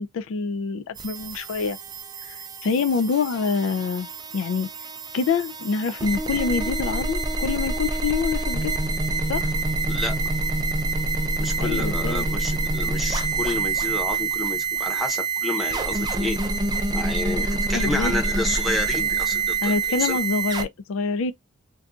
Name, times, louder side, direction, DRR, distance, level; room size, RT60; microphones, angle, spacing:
voice 1, 0.0-1.8 2.2-4.7 5.1-8.7 9.3-9.5 11.6-12.3 17.3-18.1 19.6-21.3, left 5 dB, 65° left, 0.3 m, -26 dB
sound 1, 1.0-20.6, right 3 dB, 20° right, 0.4 m, -26 dB
voice 2, 9.9-10.2 11.4-16.4 16.9-19.7 20.0-20.2, left 1 dB, ahead, 0.8 m, -29 dB
2.6 x 2.3 x 3.6 m
head